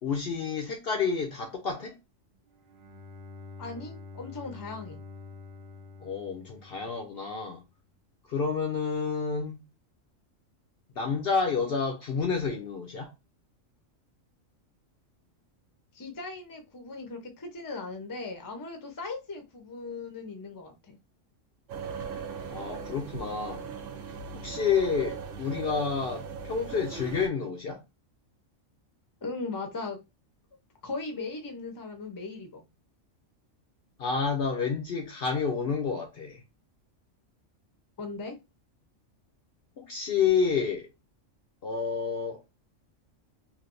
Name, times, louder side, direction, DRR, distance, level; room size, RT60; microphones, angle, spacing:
voice 1, 0.0-2.0 6.0-7.6 8.3-9.6 11.0-13.1 22.5-23.7 24.3-27.8 34.0-36.4 39.8-40.9 41.6-42.5, left 5 dB, 60° left, 0.7 m, -29 dB
Bowed string instrument, 2.5-7.5, left 4 dB, 55° right, 0.6 m, -47 dB
voice 2, 3.6-5.0 15.9-21.0 29.2-30.0 30.8-32.6 38.0-38.4, left 3 dB, 20° left, 0.5 m, -38 dB
sound 1, 21.7-27.3, right 6 dB, 70° right, 1.0 m, -39 dB
3.2 x 2.6 x 2.6 m
omnidirectional pair, 1.3 m